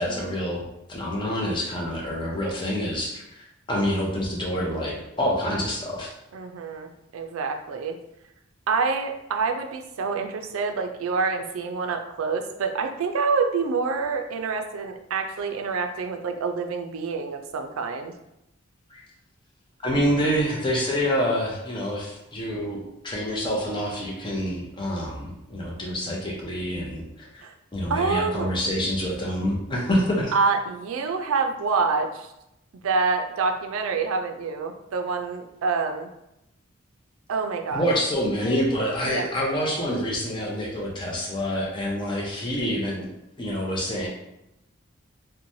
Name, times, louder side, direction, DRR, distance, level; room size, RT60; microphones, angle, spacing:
voice 1, 0.0-3.2 3.7-6.1 18.9-19.0 19.8-27.4 27.7-30.3 37.7-43.1 43.4-44.1, equal, 20° left, -3 dB, 0.5 m, -27 dB
voice 2, 6.3-8.0 8.7-18.1 27.4-27.5 27.9-28.5 30.3-32.3 32.8-36.1 37.3-37.8 39.0-39.3, right 4 dB, 85° right, 5 dB, 0.4 m, -27 dB
3.0 x 2.1 x 2.6 m, 0.85 s
head